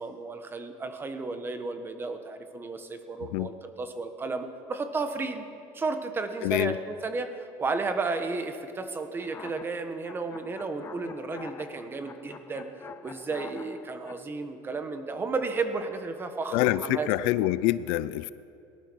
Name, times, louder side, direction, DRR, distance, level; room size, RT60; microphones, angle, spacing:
voice 1, 0.0-5.4 5.7-12.7 13.0-17.3, right 3 dB, 20° right, 8 dB, 1.3 m, -33 dB
voice 2, 6.4-6.7 16.5-18.3, left 16 dB, 75° left, 17 dB, 0.5 m, -26 dB
sound 1, 9.2-14.2, left 6 dB, 25° left, 0.5 m, -47 dB
18.5 x 12.0 x 6.3 m, 2.7 s
cardioid pair, 125°, 10 cm